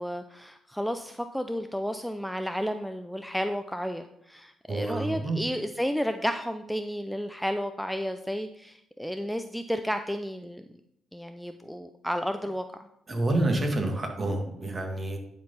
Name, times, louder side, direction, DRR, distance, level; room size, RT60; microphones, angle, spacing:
voice 1, 0.0-10.6 11.1-12.6, equal, ahead, 7 dB, 0.5 m, -32 dB
voice 2, 4.7-5.4 13.1-15.2, right 2 dB, 30° right, 3 dB, 1.9 m, -28 dB
10.0 x 4.6 x 5.5 m, 0.77 s
cardioid pair, 90°, 0 cm